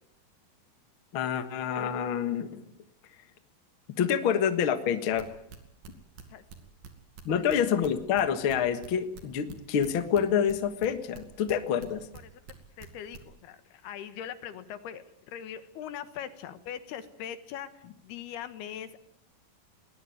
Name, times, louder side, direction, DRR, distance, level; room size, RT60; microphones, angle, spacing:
voice 1, 1.1-2.6 4.0-5.3 7.2-12.1, left 8 dB, 55° left, 10 dB, 1.5 m, -27 dB
sound 1, 5.2-10.9 11.1-12.5 12.8-13.2, right 6 dB, 65° right, 4.1 m, -46 dB
voice 2, 12.8-19.0, left 9 dB, 80° left, 12 dB, 3.3 m, -41 dB
20.5 x 20.0 x 9.4 m, 0.70 s
omnidirectional pair, 4.6 m